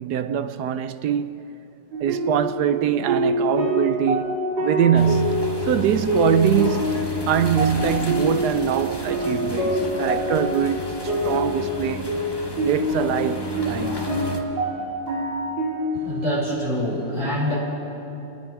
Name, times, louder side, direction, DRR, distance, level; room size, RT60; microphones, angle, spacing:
voice 1, 0.0-1.5 2.0-7.0 7.3-12.1 12.6-14.1, right 9 dB, 70° right, 1.1 m, -23 dB
sound 1, 1.9-16.5, equal, 85° right, 5.5 m, -26 dB
sound 2, 4.9-14.4, left 1 dB, 15° left, 1.4 m, -32 dB
voice 2, 15.9-17.6, equal, 40° right, 5.4 m, -25 dB
29.0 x 19.0 x 4.7 m
omnidirectional pair, 2.0 m